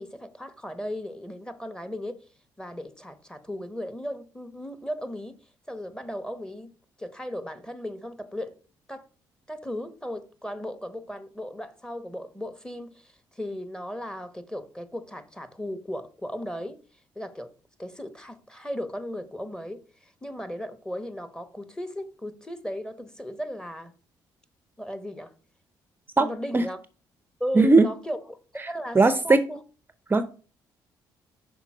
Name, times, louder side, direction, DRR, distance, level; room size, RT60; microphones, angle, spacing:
voice 1, 0.0-2.2 2.6-5.3 5.7-6.7 7.0-8.5 8.9-9.1 9.5-16.8 17.2-17.5 17.8-23.9 24.8-25.3 26.2-26.8 27.4-29.0 29.2-29.6, equal, 10° left, 1.0 m, -36 dB
voice 2, 27.6-27.9 28.9-29.4 30.1-30.2, right 3 dB, 20° right, 0.5 m, -17 dB
5.8 x 4.1 x 5.9 m
supercardioid pair, 65°, 9 cm